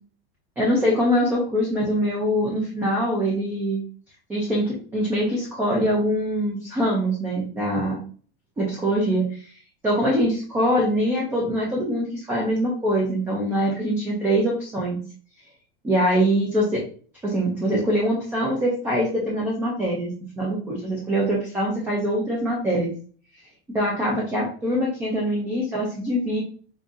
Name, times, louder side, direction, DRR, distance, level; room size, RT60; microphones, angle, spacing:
voice 1, 0.6-3.8 4.3-8.0 8.6-9.5 9.8-15.0 15.8-16.8 17.2-22.9 23.7-26.4, equal, 5° right, -4 dB, 0.3 m, -23 dB
5.3 x 2.5 x 2.4 m, 0.42 s
supercardioid pair, 170°, 30 cm